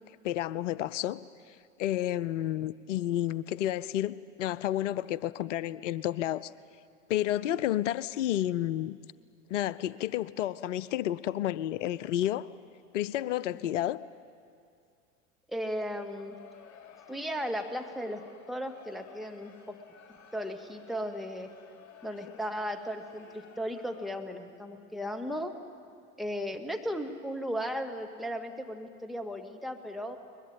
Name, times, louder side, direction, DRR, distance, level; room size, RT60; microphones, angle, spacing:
voice 1, 0.2-1.2 1.8-6.5 7.1-9.0 9.5-12.5 12.9-14.0, left 13 dB, 65° left, 18 dB, 0.7 m, -30 dB
voice 2, 15.5-16.4 17.1-18.2 18.5-19.8 20.3-21.5 22.0-25.5 26.2-30.2, equal, ahead, 3 dB, 2.0 m, -36 dB
Crowd, 15.9-24.4, left 7 dB, 45° left, 3.0 m, -54 dB
22.5 x 21.0 x 9.0 m, 2.3 s
figure-of-eight pair, 75°, 41 cm